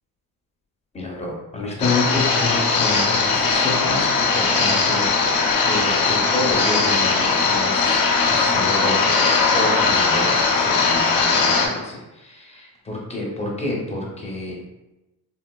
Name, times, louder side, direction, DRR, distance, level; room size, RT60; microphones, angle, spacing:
voice 1, 0.9-5.1 5.6-14.5, left 2 dB, 15° left, -2 dB, 0.6 m, -29 dB
sound 1, 1.8-11.7, left 4 dB, 65° left, 0.7 m, -19 dB
3.6 x 2.4 x 2.2 m, 0.99 s
cardioid pair, 130°, 38 cm